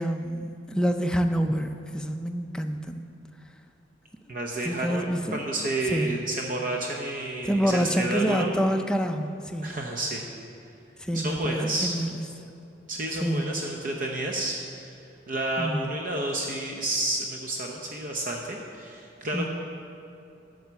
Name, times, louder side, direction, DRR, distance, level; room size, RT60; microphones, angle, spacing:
voice 1, 0.0-3.1 4.6-5.4 5.9-6.2 7.4-9.7 11.0-12.2 13.2-13.5 15.6-15.9 19.3-19.5, equal, 5° left, 5 dB, 0.4 m, -27 dB
voice 2, 4.3-8.5 9.6-10.3 11.1-11.9 12.9-14.6 15.3-19.5, right 2 dB, 45° right, 1 dB, 0.7 m, -30 dB
9.1 x 6.4 x 6.9 m, 2.7 s
head